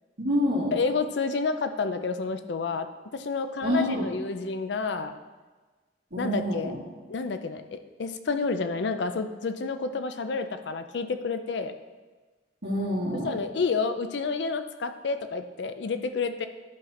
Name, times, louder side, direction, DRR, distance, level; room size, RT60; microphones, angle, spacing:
voice 1, 0.2-0.7 3.6-4.1 6.1-6.8 12.6-13.3, equal, 65° right, -6 dB, 2.3 m, -27 dB
voice 2, 0.7-2.9 3.1-5.1 6.2-6.7 7.1-11.7 13.2-16.5, left 4 dB, 75° left, 9 dB, 0.5 m, -29 dB
10.5 x 3.8 x 4.3 m, 1.3 s
head